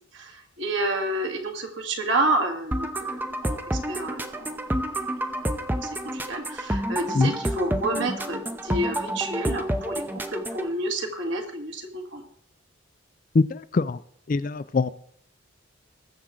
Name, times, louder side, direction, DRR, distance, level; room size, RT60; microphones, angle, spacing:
voice 1, 0.1-3.6 3.9-4.7 5.4-12.2, right 2 dB, 65° right, 2.1 m, -29 dB
sound 1, 2.7-10.7, right 1 dB, 10° right, 0.6 m, -29 dB
voice 2, 13.3-14.0 14.3-14.9, left 3 dB, 40° left, 0.4 m, -22 dB
20.5 x 7.3 x 3.8 m
head